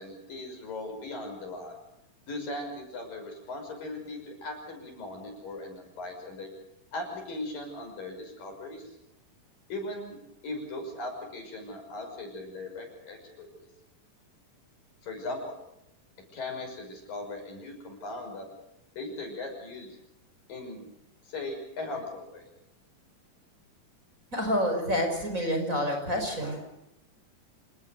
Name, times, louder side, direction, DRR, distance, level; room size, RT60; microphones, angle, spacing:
voice 1, 0.0-1.7 2.3-6.5 6.9-8.9 9.7-10.2 10.4-13.7 15.0-15.5 16.3-18.5 19.0-19.9 20.5-20.9 21.2-22.5, left 2 dB, 80° left, 4 dB, 7.8 m, -38 dB
voice 2, 24.3-26.7, equal, 20° right, 4 dB, 5.6 m, -28 dB
27.0 x 19.5 x 6.6 m, 0.82 s
omnidirectional pair, 3.9 m